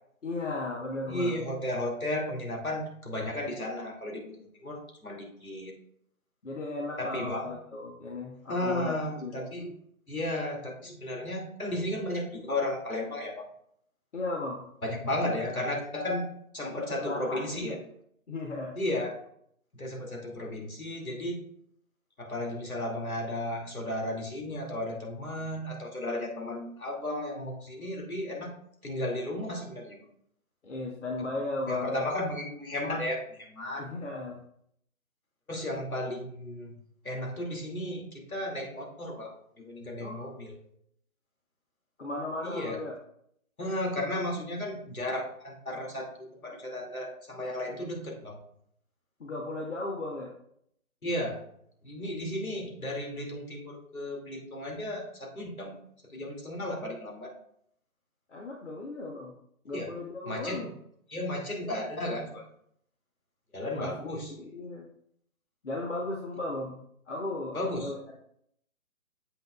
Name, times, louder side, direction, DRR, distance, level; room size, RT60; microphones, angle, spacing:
voice 1, 0.2-1.4 6.4-9.5 14.1-14.6 16.9-17.8 18.3-18.8 30.6-32.1 33.8-34.4 40.0-40.4 42.0-43.0 49.2-50.3 58.3-59.3 59.6-60.7 63.7-64.9 65.6-66.8 67.1-68.0, left 2 dB, 55° left, -1 dB, 1.3 m, -36 dB
voice 2, 1.1-5.7 7.0-7.5 8.5-9.7 10.1-13.5 14.8-16.3 16.5-17.8 18.8-19.1 19.7-21.4 22.2-28.5 28.8-30.0 31.7-33.2 33.5-33.8 35.5-36.8 37.0-39.3 39.6-40.6 42.4-42.8 43.6-48.4 51.0-51.4 51.8-55.8 56.1-57.3 59.7-59.9 60.3-60.7 61.1-62.4 63.5-64.3 67.5-67.9, left 1 dB, 75° left, 1 dB, 2.7 m, -34 dB
8.9 x 7.8 x 2.4 m, 0.69 s
figure-of-eight pair, 145°, 43 cm